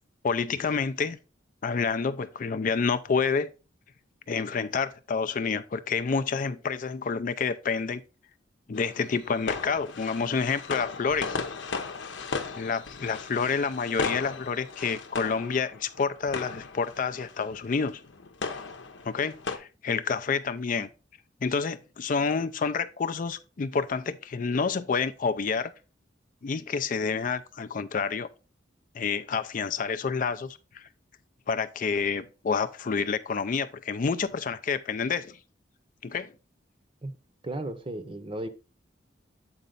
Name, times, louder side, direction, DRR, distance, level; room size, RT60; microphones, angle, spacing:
voice 1, 0.2-1.2 1.6-3.5 4.3-8.0 8.7-11.4 12.6-18.0 19.0-20.9 21.4-25.7 26.4-28.3 28.9-30.9 31.5-35.4 36.0-36.3, left 5 dB, 45° left, 0.4 m, -28 dB
sound 1, 8.7-19.6, left 4 dB, 80° left, 0.8 m, -36 dB
voice 2, 37.4-38.5, right 1 dB, 30° right, 0.7 m, -35 dB
7.9 x 4.2 x 3.9 m
head